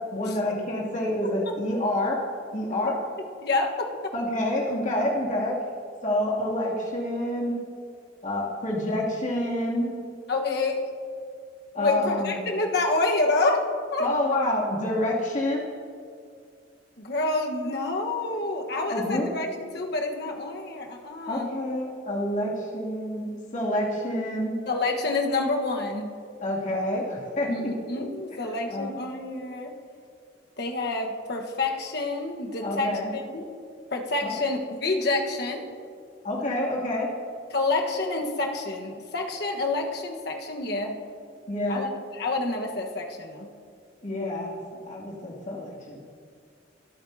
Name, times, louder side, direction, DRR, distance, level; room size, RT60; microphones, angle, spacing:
voice 1, 0.1-2.2 2.5-2.9 4.1-5.5 6.0-7.6 8.2-9.9 11.7-12.4 14.0-15.6 18.9-19.5 21.3-24.6 26.4-27.7 28.7-28.9 32.6-33.1 34.2-34.3 36.2-37.1 41.5-41.9 44.0-46.0, left 1 dB, 40° left, -4 dB, 2.6 m, -28 dB
voice 2, 3.4-4.1 10.3-10.9 11.8-13.6 13.9-14.4 17.0-21.5 24.7-26.2 27.5-29.7 30.6-33.5 33.9-35.7 37.5-41.0 41.7-43.5, left 2 dB, 60° left, 2 dB, 1.3 m, -28 dB
25.5 x 8.9 x 2.8 m, 2.2 s
head